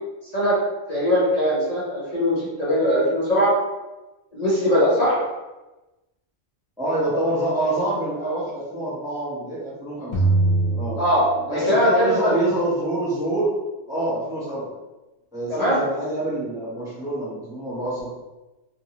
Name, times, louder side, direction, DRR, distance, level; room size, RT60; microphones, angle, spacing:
voice 1, 0.9-3.5 4.3-5.2 11.0-12.3 15.5-15.8, equal, 40° left, -9 dB, 0.8 m, -20 dB
voice 2, 6.8-10.2 10.7-11.0 11.5-13.5 13.9-14.7 15.3-18.1, right 1 dB, 5° right, -8 dB, 0.6 m, -26 dB
sound 1, 10.1-11.9, right 2 dB, 70° left, 0.3 m, -22 dB
2.6 x 2.6 x 2.8 m, 1.1 s
omnidirectional pair, 1.3 m